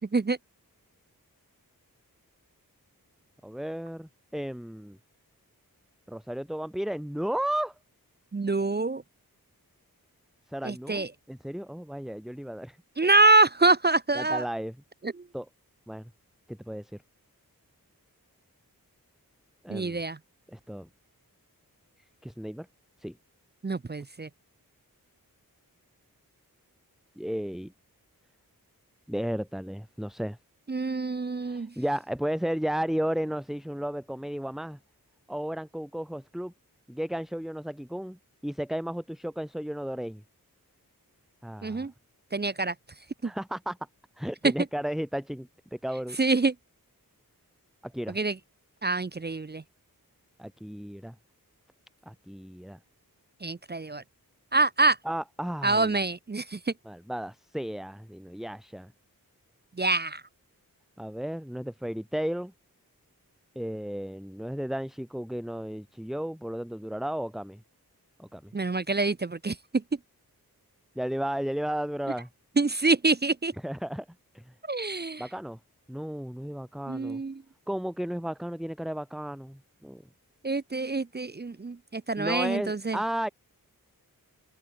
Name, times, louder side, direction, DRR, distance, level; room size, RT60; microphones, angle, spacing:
voice 1, 3.4-5.0 6.1-7.7 10.5-12.8 13.2-13.3 14.1-14.8 15.3-15.5 15.9-16.1 16.5-16.9 19.6-20.0 20.5-20.9 22.2-22.7 23.0-23.1 27.2-27.7 29.1-30.4 31.4-34.8 35.3-36.5 36.9-38.2 38.4-40.2 41.4-41.9 43.2-43.8 44.2-46.2 47.8-48.2 50.4-51.1 52.1-52.8 55.0-56.0 56.9-58.9 61.0-62.5 63.6-67.6 68.2-68.5 71.0-72.3 73.6-74.1 74.3-74.5 75.2-75.6 75.9-77.2 77.7-80.0 82.2-83.3, equal, ahead, 2.0 m, -34 dB
voice 2, 8.3-9.0 10.6-11.1 13.0-14.4 15.0-15.1 19.7-20.2 23.6-24.3 30.7-31.7 41.6-41.9 42.3-42.7 43.2-43.3 46.2-46.5 48.1-48.4 48.8-49.6 53.4-54.0 54.5-55.0 55.6-56.7 59.8-60.2 68.5-69.6 72.6-73.5 74.7-75.2 76.9-77.4 80.4-83.0, right 3 dB, 30° right, 0.6 m, -25 dB
wide cardioid pair, 65°, 36 cm